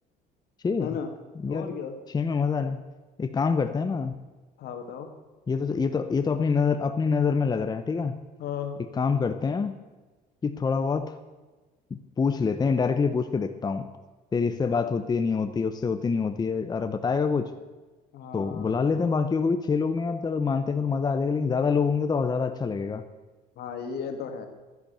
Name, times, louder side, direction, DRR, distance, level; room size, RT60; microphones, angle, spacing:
voice 1, 0.8-1.1 1.5-2.0 4.6-5.1 8.4-8.8 10.8-10.9 18.1-19.1 23.6-24.5, left 7 dB, 70° left, 6 dB, 2.0 m, -35 dB
voice 2, 2.1-2.8 3.2-4.1 5.5-8.2 9.0-9.8 10.4-11.1 11.9-13.9 14.3-17.5 18.3-23.0, left 5 dB, 25° left, 8 dB, 0.7 m, -26 dB
12.0 x 10.0 x 6.8 m, 1.2 s
cardioid pair, 110°, 17 cm